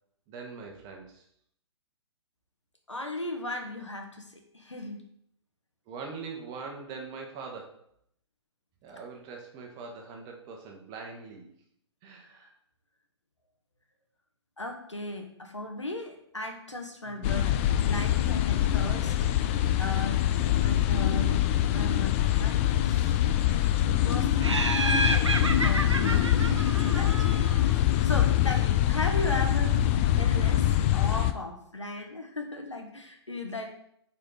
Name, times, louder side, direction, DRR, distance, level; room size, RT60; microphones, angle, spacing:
voice 1, 0.3-1.2 5.9-7.8 8.8-11.5 12.0-12.5 17.1-17.3 24.3-24.7 29.1-29.5 30.1-30.4, right 4 dB, 25° right, 2 dB, 1.5 m, -42 dB
voice 2, 2.9-5.0 14.6-20.3 20.6-23.2 23.8-27.2 27.5-33.7, left 2 dB, 85° left, 3 dB, 1.5 m, -37 dB
sound 1, 17.2-31.3, left 12 dB, 25° left, 0.4 m, -24 dB
Laughter, 24.4-27.7, right 2 dB, 80° right, 0.9 m, -30 dB
8.6 x 4.4 x 4.0 m, 0.71 s
figure-of-eight pair, 120°, 15 cm